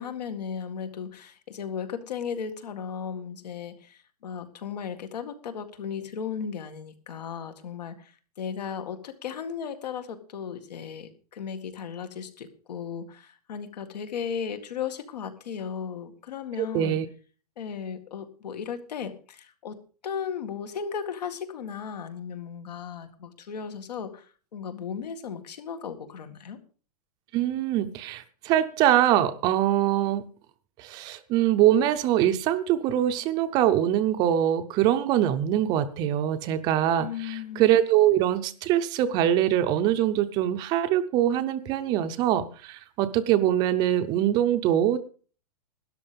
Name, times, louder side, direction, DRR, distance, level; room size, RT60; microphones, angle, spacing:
voice 1, 0.0-17.0 17.6-19.8 20.0-24.3 24.5-26.6 37.0-37.7, left 7 dB, 80° left, 8 dB, 2.1 m, -36 dB
voice 2, 16.6-17.1 27.3-30.2 30.8-45.0, right 11 dB, 20° right, 10 dB, 0.6 m, -23 dB
13.0 x 10.5 x 5.2 m, 0.40 s
supercardioid pair, 170°, 20 cm